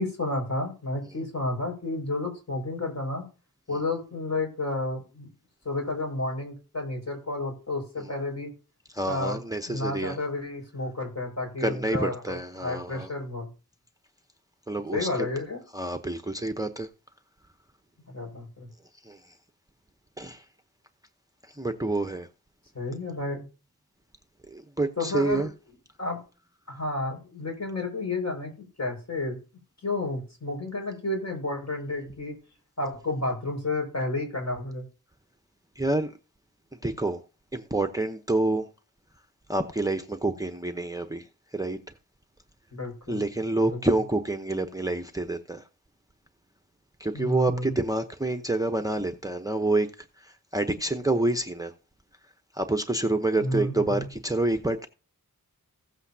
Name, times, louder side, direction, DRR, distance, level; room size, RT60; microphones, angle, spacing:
voice 1, 0.0-3.2 3.7-5.3 5.6-8.5 9.0-9.4 9.7-13.5 14.9-15.6 18.1-18.7 22.7-23.4 25.0-25.5 26.0-26.2 26.7-28.5 28.8-29.4 29.8-32.3 32.8-34.8 42.7-43.2 43.7-43.8 47.1-47.7 53.4-54.0, left 2 dB, 50° left, 5.4 m, -31 dB
voice 2, 8.9-10.2 11.6-13.1 14.7-15.3 15.7-16.9 19.0-19.2 20.2-20.4 21.5-22.3 24.5-25.5 35.8-36.1 36.8-37.2 37.5-38.7 39.5-41.8 43.1-45.7 47.0-51.7 52.5-54.9, right 2 dB, 10° right, 0.8 m, -28 dB
16.0 x 8.1 x 2.8 m
wide cardioid pair, 75°, 35 cm